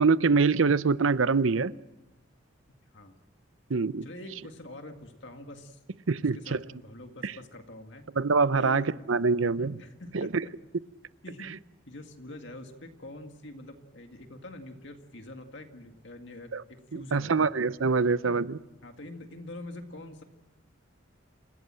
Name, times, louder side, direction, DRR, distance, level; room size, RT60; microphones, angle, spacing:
voice 1, 0.0-1.7 3.7-4.1 6.1-6.6 7.2-7.3 8.2-9.8 10.1-10.4 16.5-16.6 16.9-18.6, right 4 dB, 80° right, 0.7 m, -24 dB
voice 2, 4.0-5.8 6.2-8.1 8.6-8.9 9.8-10.5 11.2-11.5 11.9-17.5 18.2-18.4 18.8-20.2, left 1 dB, 65° left, 2.1 m, -45 dB
29.0 x 17.0 x 7.6 m
head